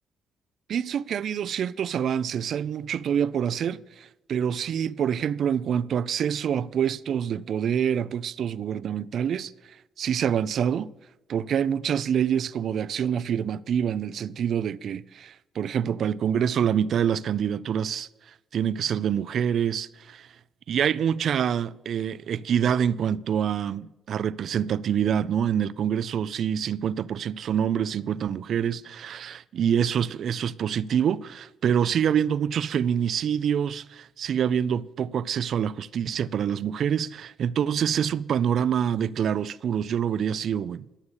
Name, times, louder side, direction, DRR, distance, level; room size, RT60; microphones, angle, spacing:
voice 1, 0.7-9.5 10.0-10.9 11.3-18.1 18.5-20.3 20.7-40.8, right 8 dB, 65° right, 0.5 m, -26 dB
13.0 x 7.1 x 8.2 m
cardioid pair, 90°, 0 cm